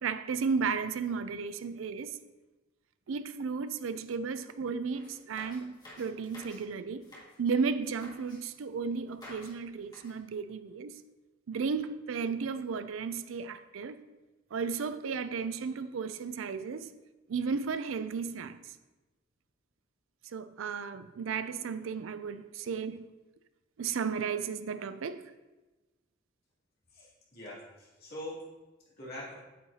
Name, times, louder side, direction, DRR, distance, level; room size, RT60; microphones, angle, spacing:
voice 1, 0.0-2.2 3.1-7.1 7.4-11.0 11.5-14.0 14.5-16.9 17.3-18.8 20.2-23.1 23.8-25.2, right 5 dB, 85° right, 0.4 m, -34 dB
sound 1, 4.9-6.6 6.9-7.4 7.8-8.4 9.1-9.6 9.8-10.2, left 1 dB, 20° left, 1.9 m, -51 dB
voice 2, 26.9-28.4 29.0-29.3, left 1 dB, 50° left, 2.7 m, -43 dB
8.5 x 7.8 x 2.8 m
head